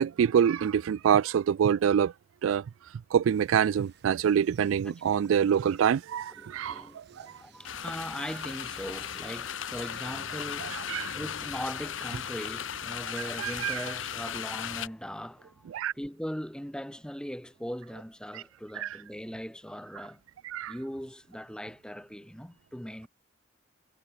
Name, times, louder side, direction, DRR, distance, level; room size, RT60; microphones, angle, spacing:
voice 1, 0.0-2.1 2.4-2.6 3.1-7.3 10.6-11.1 13.4-13.9 15.7-15.9 18.3-18.4 18.8-18.9 20.4-20.7, right 8 dB, 85° right, 0.3 m, -26 dB
sound 1, 3.2-10.5, right 7 dB, 60° right, 2.3 m, -60 dB
voice 2, 4.9-5.2 6.4-15.7 15.9-20.2 20.7-23.1, equal, 5° left, 2.0 m, -40 dB
sound 2, 7.6-14.9, left 8 dB, 75° left, 1.2 m, -37 dB
head